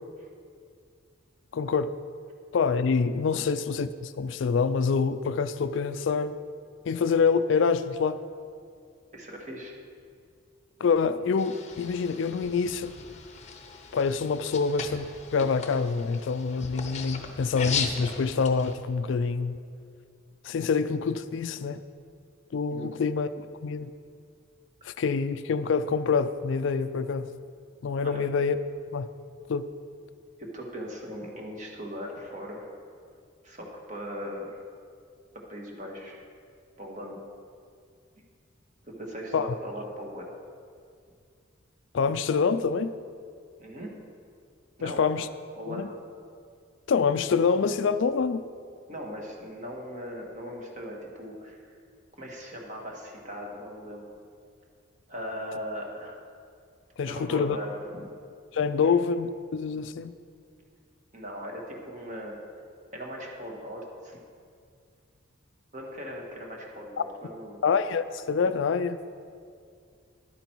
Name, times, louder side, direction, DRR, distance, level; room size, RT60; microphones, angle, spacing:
voice 1, 1.5-1.9 2.5-6.4 6.9-8.2 10.8-12.9 13.9-19.6 20.4-21.8 22.5-23.3 23.6-23.9 24.8-27.3 27.8-28.6 28.9-29.1 29.5-29.7 39.3-39.5 41.9-42.9 44.8-45.3 45.7-45.9 46.9-48.4 57.0-57.6 58.5-60.1 67.6-69.0, left 5 dB, 65° left, 12 dB, 0.4 m, -26 dB
voice 2, 9.1-9.7 22.7-22.9 28.0-28.2 30.4-32.7 33.4-34.6 35.3-36.2 36.8-37.2 38.8-40.3 43.6-44.0 44.8-45.1 45.6-46.0 48.9-51.7 52.2-54.0 55.1-56.2 57.1-58.1 58.8-58.9 61.1-62.4 62.9-64.2 65.7-67.6, equal, 35° right, -1 dB, 1.5 m, -39 dB
sound 1, 11.4-18.7, left 5 dB, 35° left, 0.7 m, -37 dB
11.0 x 9.2 x 4.6 m, 2.3 s
head